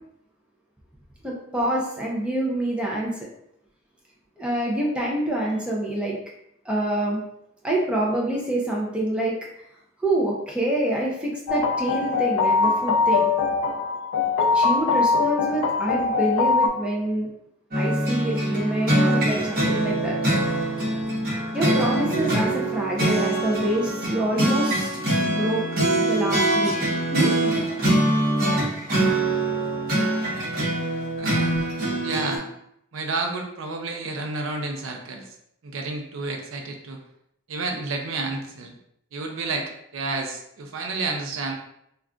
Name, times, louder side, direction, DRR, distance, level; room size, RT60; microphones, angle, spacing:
voice 1, 1.2-3.3 4.4-6.2 6.7-7.2 7.6-9.3 10.0-13.3 14.4-17.3 17.7-20.2 21.5-24.9 25.3-25.6 25.9-26.7 27.1-27.4 31.5-31.6, right 1 dB, 5° right, -4 dB, 0.4 m, -26 dB
sound 1, 11.5-16.7, left 4 dB, 85° left, 0.3 m, -22 dB
sound 2, 17.7-32.4, right 1 dB, 45° right, 1.0 m, -23 dB
voice 2, 31.2-32.4 32.9-35.3 35.6-37.0 37.5-38.8 39.1-41.5, right 3 dB, 70° right, 3 dB, 0.4 m, -30 dB
2.3 x 2.3 x 3.6 m, 0.76 s
head